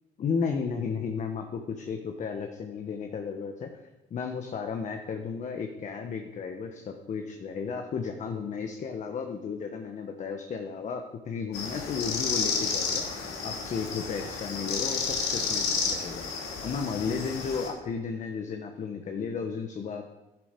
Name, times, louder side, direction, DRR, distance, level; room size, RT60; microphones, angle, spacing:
voice 1, 0.2-16.2 16.6-20.1, left 5 dB, 45° left, 4 dB, 1.3 m, -34 dB
sound 1, 11.5-17.7, left 5 dB, 85° left, 2.9 m, -31 dB
11.0 x 11.0 x 5.3 m, 1.0 s
cardioid pair, 110°, 17 cm